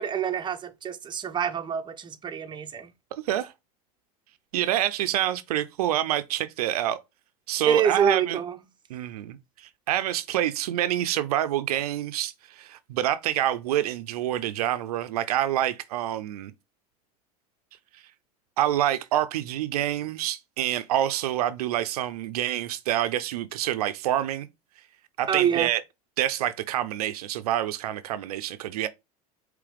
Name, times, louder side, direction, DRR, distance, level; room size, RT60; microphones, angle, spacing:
voice 1, 0.0-2.9 7.7-8.5 25.3-25.7, right 8 dB, 25° right, 0.7 m, -26 dB
voice 2, 3.1-3.5 4.5-7.0 7.5-8.4 8.9-16.5 18.6-24.5 25.2-25.8 26.2-28.9, right 12 dB, 85° right, 0.5 m, -27 dB
4.8 x 3.2 x 3.3 m
hypercardioid pair, 100°, 19 cm